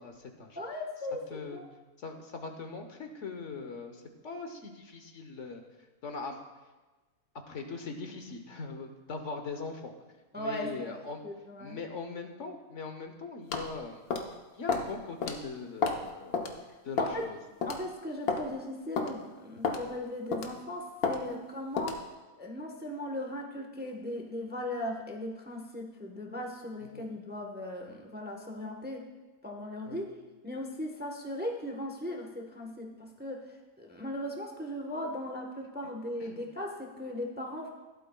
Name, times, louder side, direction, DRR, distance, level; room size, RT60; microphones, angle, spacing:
voice 1, 0.0-0.6 1.3-1.6 2.0-5.6 6.0-6.4 7.5-9.9 10.4-11.2 11.6-14.0 14.6-17.4 26.9-27.1 29.9-30.0 36.2-36.4, left 4 dB, 60° left, 5 dB, 1.3 m, -41 dB
voice 2, 0.6-1.7 10.3-11.0 11.2-11.8 17.0-17.3 17.6-22.0 22.4-29.1 29.4-30.1 30.4-37.7, left 1 dB, 10° right, 2 dB, 0.9 m, -38 dB
sound 1, 13.5-13.7 14.1-14.3 14.7-14.9 15.2-15.4 15.8-16.0 16.3-16.5 17.0-17.2 17.6-17.8 18.3-18.4 19.0-19.1 19.6-19.8 20.3-20.6 21.0-21.2 21.8-22.0, left 5 dB, 80° left, 1.5 m, -30 dB
16.0 x 12.0 x 2.3 m, 1.2 s
omnidirectional pair, 1.5 m